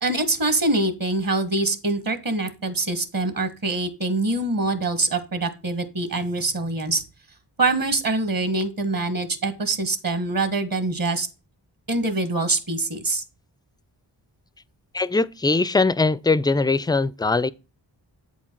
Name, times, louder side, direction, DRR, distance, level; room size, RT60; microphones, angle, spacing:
voice 1, 0.0-7.0 7.6-11.3 11.9-13.2, right 2 dB, 50° right, 1.5 m, -24 dB
voice 2, 14.9-17.5, left 3 dB, 10° left, 0.3 m, -21 dB
7.9 x 4.6 x 4.4 m
cardioid pair, 40°, 45 cm